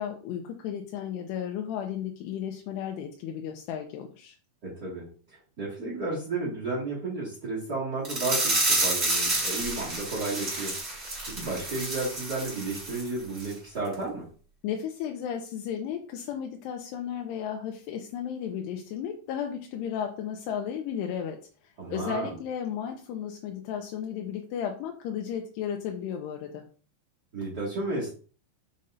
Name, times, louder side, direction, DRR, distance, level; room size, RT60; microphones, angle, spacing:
voice 1, 0.0-4.3 14.6-21.4 21.6-26.6, left 8 dB, 80° left, 2 dB, 2.6 m, -34 dB
voice 2, 4.6-14.2 21.8-22.3 27.3-28.1, right 3 dB, 40° right, -7 dB, 1.4 m, -33 dB
sound 1, 8.0-13.1 13.4-13.5 13.9-14.0, right 2 dB, 25° right, 1.5 m, -29 dB
7.0 x 5.2 x 2.6 m, 0.41 s
omnidirectional pair, 5.1 m